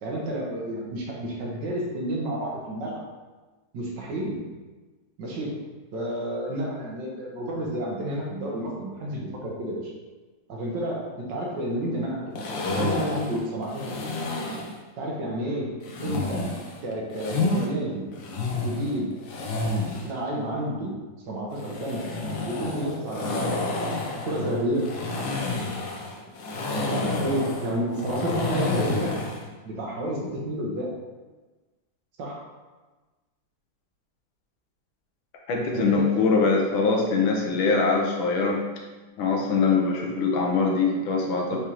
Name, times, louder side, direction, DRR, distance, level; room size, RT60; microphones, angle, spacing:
voice 1, 0.0-3.0 3.7-4.4 5.2-5.5 5.9-9.9 10.5-14.1 15.0-15.7 16.0-16.4 16.8-18.1 18.6-19.1 20.0-20.9 21.3-22.0 22.5-23.9 24.2-24.9 26.5-29.1 29.6-30.9 32.2-32.4 35.7-36.3 41.5-41.6, right 1 dB, 65° right, -3 dB, 1.5 m, -30 dB
sound 1, 12.4-14.8 15.8-17.7 18.1-20.1 21.5-29.4, left 2 dB, 70° left, 1.4 m, -30 dB
voice 2, 35.5-38.6 39.2-41.6, left 4 dB, 90° left, 0 dB, 1.6 m, -23 dB
4.9 x 3.4 x 2.9 m, 1.2 s
omnidirectional pair, 2.2 m